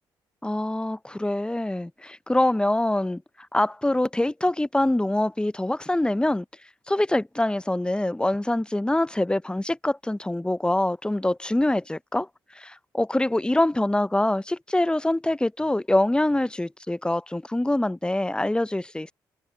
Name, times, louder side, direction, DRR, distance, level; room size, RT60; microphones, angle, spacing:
voice 1, 0.4-3.2 3.5-6.4 6.9-12.3 12.6-19.1, left 1 dB, 10° left, 0.8 m, -24 dB
hypercardioid pair, 40°, 10 cm